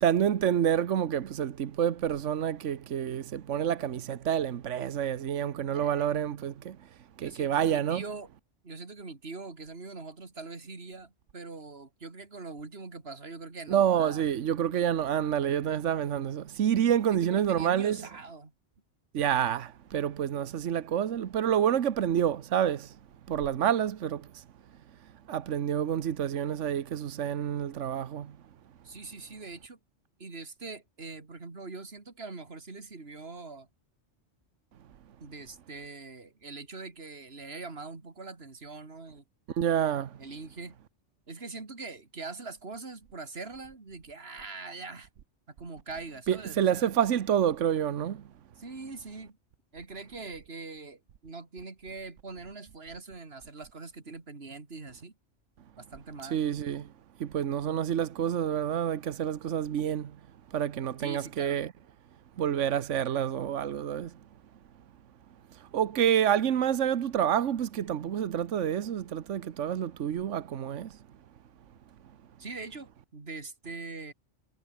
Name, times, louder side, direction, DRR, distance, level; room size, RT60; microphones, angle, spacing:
voice 1, 0.0-6.8 7.2-8.0 13.7-18.0 19.1-22.9 23.3-24.4 25.3-28.3 39.6-40.2 46.3-48.2 56.3-56.9 57.2-60.1 60.5-61.7 62.4-64.1 65.7-70.9, right 9 dB, 80° right, 1.3 m, -28 dB
voice 2, 5.7-6.1 7.2-8.3 8.6-14.2 17.1-18.5 28.8-29.8 30.2-33.7 35.2-39.2 40.2-40.8 41.3-45.1 45.5-46.9 48.6-49.4 49.7-55.2 55.8-56.5 61.0-61.6 72.4-74.1, right 3 dB, 55° right, 3.1 m, -43 dB
omnidirectional pair, 1.3 m